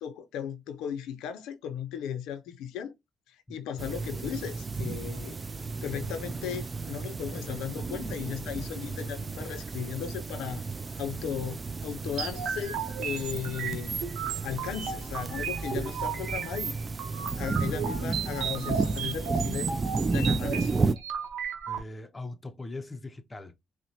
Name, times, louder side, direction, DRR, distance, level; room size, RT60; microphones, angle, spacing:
voice 1, 0.0-2.9 3.5-5.4 5.8-10.6 11.0-14.0 14.4-16.7 17.4-19.7 20.1-20.8, left 8 dB, 85° left, 0.5 m, -36 dB
sound 1, 3.8-20.9, right 4 dB, 30° right, 0.3 m, -33 dB
sound 2, 12.2-21.8, right 7 dB, 80° right, 0.7 m, -35 dB
voice 2, 21.7-23.6, left 2 dB, 25° left, 0.5 m, -41 dB
5.6 x 2.1 x 2.7 m
cardioid pair, 80°, 0 cm